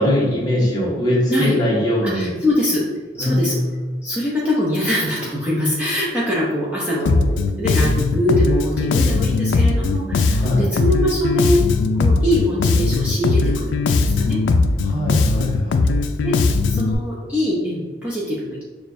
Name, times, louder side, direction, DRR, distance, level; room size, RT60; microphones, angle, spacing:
voice 1, 0.0-2.3 3.2-3.8 10.3-10.7 14.8-15.8, equal, 20° left, -6 dB, 1.0 m, -21 dB
voice 2, 2.1-2.8 3.2-3.6 4.0-11.6 11.9-14.4 16.2-16.3 16.7-18.6, left 1 dB, 10° right, -7 dB, 0.6 m, -23 dB
Bass guitar, 7.1-16.9, left 3 dB, 90° left, 0.3 m, -19 dB
6.4 x 2.3 x 2.6 m, 1.3 s
head